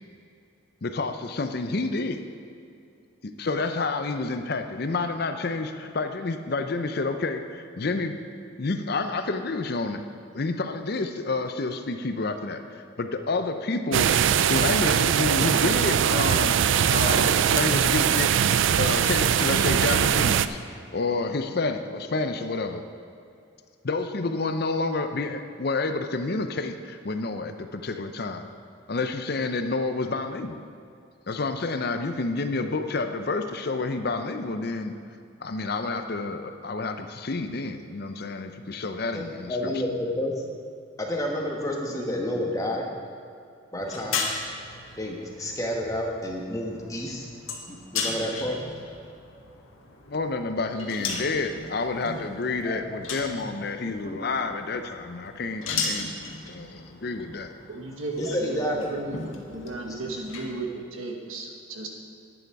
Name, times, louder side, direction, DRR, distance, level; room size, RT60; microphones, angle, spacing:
voice 1, 0.8-2.2 3.2-8.1 8.6-10.0 10.3-16.6 16.9-18.3 18.8-20.6 20.9-22.8 23.8-28.5 28.9-30.6 31.3-34.9 35.4-39.7 50.1-56.1 56.5-57.5, left 3 dB, 50° left, 7 dB, 0.6 m, -29 dB
sound 1, 13.9-20.5, right 8 dB, 65° right, 0.3 m, -21 dB
voice 2, 39.1-40.4 41.0-42.8 43.7-44.3 45.0-47.3 47.7-48.6 52.6-52.8 53.2-53.6 54.0-54.2 57.9-58.9 59.8-60.0, left 1 dB, 15° left, 0 dB, 1.2 m, -30 dB
sound 2, 43.8-60.6, left 4 dB, 85° left, 1.4 m, -36 dB
voice 3, 50.7-51.0 52.5-52.8 57.3-57.4 57.7-59.2 59.5-61.9, right 2 dB, 85° right, 2 dB, 1.4 m, -35 dB
11.0 x 9.1 x 4.7 m, 2.5 s
head